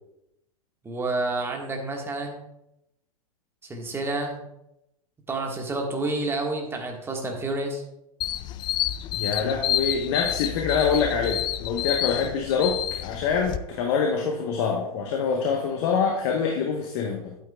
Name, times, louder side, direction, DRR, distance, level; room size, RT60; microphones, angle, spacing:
voice 1, 0.8-2.4 3.6-4.4 5.3-7.8, right 2 dB, 10° right, 1 dB, 1.7 m, -29 dB
sound 1, 8.2-13.6, left 12 dB, 25° left, 0.4 m, -29 dB
voice 2, 9.1-17.3, left 6 dB, 50° left, 1 dB, 1.2 m, -25 dB
11.5 x 8.6 x 2.4 m, 0.84 s
figure-of-eight pair, 105°, 19 cm